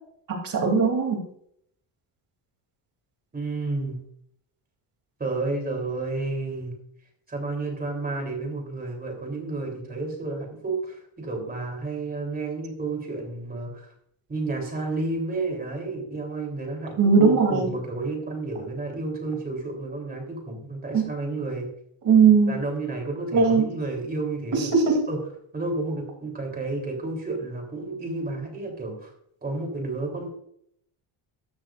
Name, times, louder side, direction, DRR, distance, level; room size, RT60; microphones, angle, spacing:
voice 1, 0.3-1.2 17.0-17.7 20.9-21.1 22.0-22.6 23.3-23.7 24.5-25.0, right 5 dB, 45° right, 2 dB, 3.3 m, -19 dB
voice 2, 3.3-4.0 5.2-6.7 7.3-13.9 14.3-21.7 22.5-24.7 25.1-25.2 25.5-29.1 29.4-30.3, right 3 dB, 20° right, 1 dB, 3.7 m, -31 dB
15.0 x 13.0 x 2.6 m, 0.70 s
cardioid pair, 170°, 45 cm